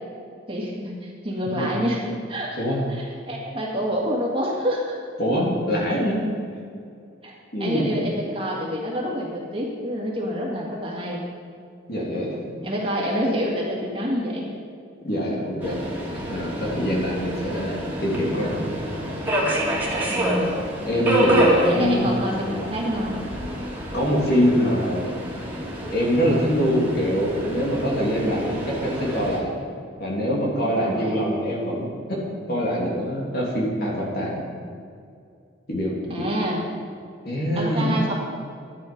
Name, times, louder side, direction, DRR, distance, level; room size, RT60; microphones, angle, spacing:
voice 1, 0.5-2.0 2.3-2.6 2.9-5.0 7.2-7.3 7.6-11.2 12.6-14.4 20.1-20.5 21.6-23.2 30.7-31.3 36.1-36.6 37.6-38.1, equal, 25° right, -3 dB, 2.1 m, -27 dB
voice 2, 5.2-6.2 7.5-7.9 11.9-12.5 15.0-15.8 16.1-18.7 20.9-22.0 23.9-25.1 25.9-29.5 30.0-34.4 35.7-36.2 37.2-37.9, equal, 50° left, -4 dB, 2.9 m, -24 dB
Subway metro underground, 15.6-29.4, equal, 10° right, 2.3 m, -27 dB
12.0 x 10.5 x 5.3 m, 2.4 s
head